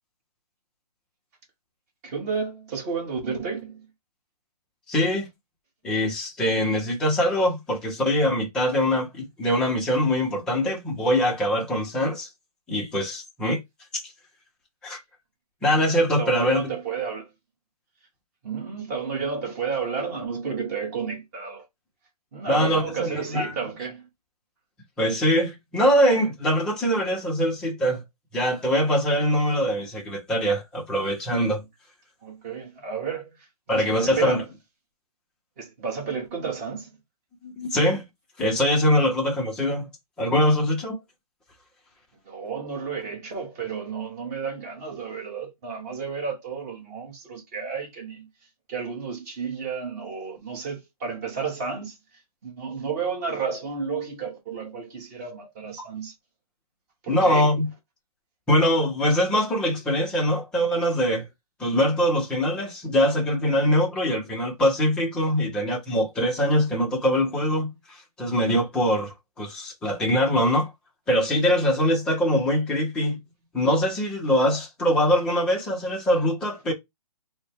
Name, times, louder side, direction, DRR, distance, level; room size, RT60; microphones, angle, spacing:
voice 1, 2.0-3.9 15.7-17.3 18.4-21.7 22.3-24.1 31.4-31.5 32.2-34.5 35.6-37.0 42.2-48.3 48.7-52.0 52.4-56.1 57.0-57.5, right 5 dB, 25° right, 1.2 m, -32 dB
voice 2, 4.9-5.3 5.8-12.3 12.7-13.6 14.8-15.0 15.6-16.7 22.5-23.5 25.0-28.0 28.3-31.6 33.7-34.4 37.4-38.0 38.4-39.9 40.2-41.0 55.8-55.9 57.1-57.7 58.5-61.2 61.6-70.7 71.1-73.2 73.5-76.7, equal, 5° left, 0.5 m, -23 dB
3.9 x 2.1 x 3.3 m
hypercardioid pair, 160°, 20 cm